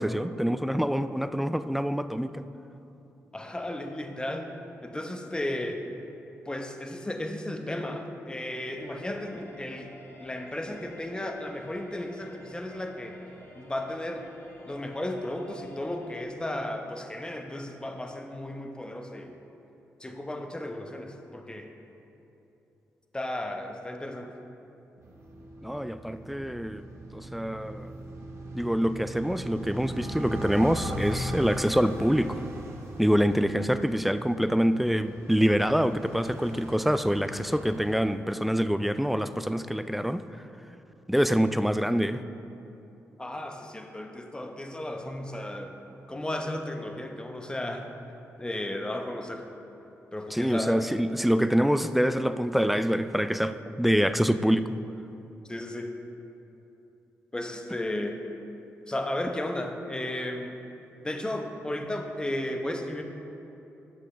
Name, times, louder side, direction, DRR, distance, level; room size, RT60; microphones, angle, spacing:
voice 1, 0.0-2.4 25.6-26.8 27.1-27.9 28.5-32.4 33.0-40.2 41.1-42.2 50.3-54.7, equal, ahead, 12 dB, 0.3 m, -25 dB
voice 2, 3.3-4.6 4.8-5.8 6.4-9.9 10.2-13.2 13.6-14.3 14.7-19.4 20.0-21.7 23.1-24.3 43.2-47.9 48.4-49.5 50.1-50.8 55.5-56.0 57.3-58.2 58.9-60.6 61.0-63.0, left 1 dB, 15° left, 4 dB, 0.8 m, -34 dB
sound 1, 8.8-16.3, left 1 dB, 45° left, 1.3 m, -50 dB
sound 2, 25.0-38.0, right 1 dB, 55° right, 1.1 m, -39 dB
10.0 x 6.2 x 3.2 m, 3.0 s
supercardioid pair, 55°, 5 cm